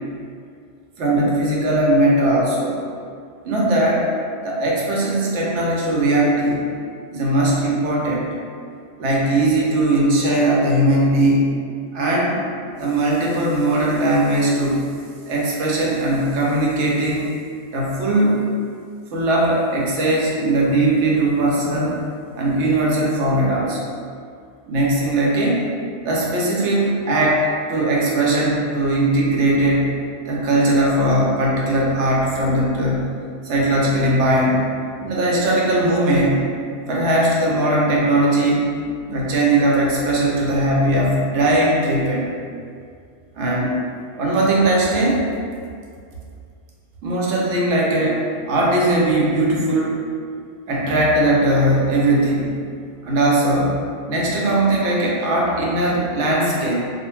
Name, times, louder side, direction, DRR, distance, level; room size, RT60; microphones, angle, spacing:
voice 1, 1.0-2.8 3.4-4.1 4.4-6.7 7.1-8.3 9.0-11.6 11.9-12.4 12.8-14.9 15.3-17.3 17.7-18.4 19.1-22.0 22.4-23.9 24.7-25.7 26.0-33.1 33.4-34.7 35.0-36.5 36.9-38.7 39.1-42.2 43.3-43.8 44.2-45.2 47.0-50.0 50.7-52.6 53.0-56.8, right 1 dB, 80° right, -4 dB, 0.9 m, -19 dB
2.5 x 2.1 x 3.0 m, 2.3 s
omnidirectional pair, 1.2 m